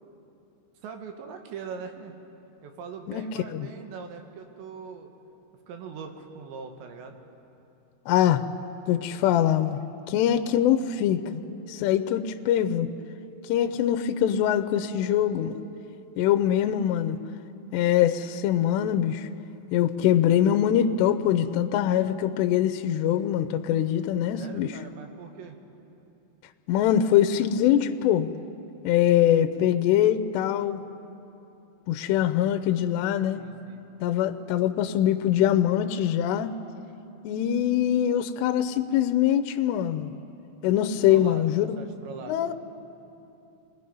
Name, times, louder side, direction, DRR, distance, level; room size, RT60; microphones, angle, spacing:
voice 1, 0.8-2.2 2.6-5.1 5.7-7.2 24.4-25.6 33.3-33.9 41.1-42.4, right 5 dB, 75° right, 4 dB, 3.6 m, -41 dB
voice 2, 8.1-8.4 8.9-9.8 10.1-11.2 11.7-12.9 13.5-15.6 16.2-17.2 17.7-19.3 19.7-24.7 26.7-28.3 28.8-30.8 31.9-33.4 34.0-36.6 37.2-40.1 40.6-41.7 42.3-42.5, left 10 dB, 80° left, 8 dB, 2.5 m, -23 dB
sound 1, 11.3-16.3, right 4 dB, 5° right, 2.3 m, -50 dB
29.0 x 20.5 x 5.4 m, 2.9 s
omnidirectional pair, 5.3 m